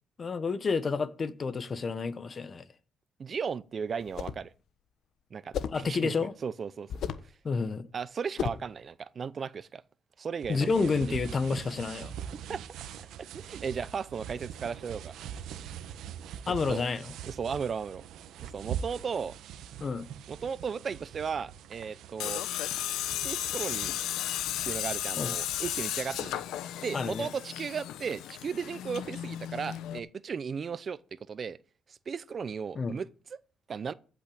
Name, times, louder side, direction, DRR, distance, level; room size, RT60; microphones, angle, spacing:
voice 1, 0.2-2.6 5.7-6.3 7.4-7.9 10.5-12.1 16.5-17.1 19.8-20.1 25.2-25.3 26.9-27.3 32.7-33.0, left 4 dB, 40° left, 1.2 m, -30 dB
voice 2, 3.2-4.5 5.3-6.9 7.2-7.3 7.9-9.8 10.2-11.0 12.5-12.6 13.2-15.1 16.7-16.9 17.3-18.0 18.4-19.4 20.3-22.8 23.2-23.9 24.6-26.4 26.8-31.6 31.9-33.4 33.7-33.9, right 6 dB, 45° right, 0.7 m, -36 dB
sound 1, 4.0-4.5 5.5-5.9 6.9-7.3 8.4-8.7, left 8 dB, 65° left, 1.1 m, -34 dB
sound 2, 10.4-26.4, right 9 dB, 85° right, 1.2 m, -43 dB
Tools, 22.2-30.0, left 12 dB, 90° left, 0.8 m, -34 dB
15.0 x 6.1 x 8.7 m
cardioid pair, 90°, 0 cm